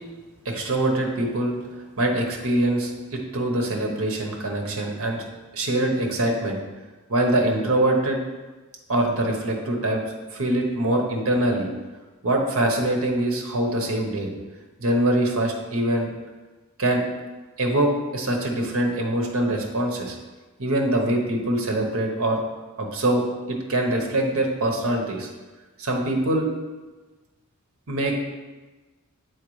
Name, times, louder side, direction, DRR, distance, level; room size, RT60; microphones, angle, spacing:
voice 1, 0.4-1.5 2.0-5.3 5.5-6.6 7.1-8.2 8.9-10.0 10.3-11.7 12.2-14.3 14.8-16.1 16.8-17.0 17.6-20.2 20.6-22.4 22.8-23.2 23.7-25.3 25.8-26.5 27.9-28.1, right 1 dB, 75° right, 1 dB, 1.0 m, -23 dB
7.3 x 4.6 x 3.2 m, 1.2 s
head